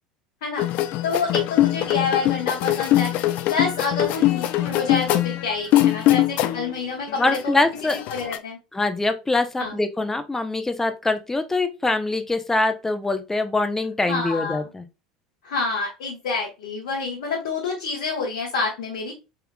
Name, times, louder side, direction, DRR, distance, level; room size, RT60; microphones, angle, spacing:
sound 1, 0.6-6.7 7.1-8.4, left 14 dB, 55° left, 0.4 m, -22 dB
voice 1, 1.0-3.1 3.5-7.6 8.1-8.6 9.6-9.8 14.1-14.6 15.4-19.1, left 4 dB, 70° left, 1.1 m, -28 dB
voice 2, 7.2-8.0 8.7-14.9, left 2 dB, 10° left, 0.7 m, -23 dB
4.5 x 3.6 x 2.2 m
figure-of-eight pair, 75°, 3 cm